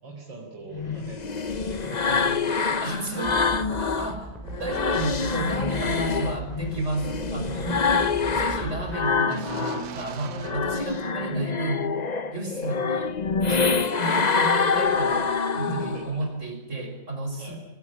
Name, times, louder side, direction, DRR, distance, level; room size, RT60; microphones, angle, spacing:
voice 1, 0.0-2.8 7.5-8.3 13.5-13.8 15.5-16.1 17.4-17.6, right 2 dB, 75° right, -1 dB, 5.1 m, -40 dB
sound 1, 0.7-4.1 4.5-9.9 10.3-16.1, left 5 dB, 40° left, 0.6 m, -26 dB
voice 2, 2.8-4.3 4.6-7.8 8.4-11.9 12.3-13.2 13.5-15.2 15.5-17.6, right 2 dB, 35° right, 4 dB, 5.8 m, -32 dB
sound 2, 3.2-9.7, equal, ahead, 5.7 m, -39 dB
sound 3, 4.5-11.4, right 7 dB, 55° right, 1.5 m, -43 dB
25.0 x 19.0 x 9.9 m, 0.95 s
omnidirectional pair, 2.1 m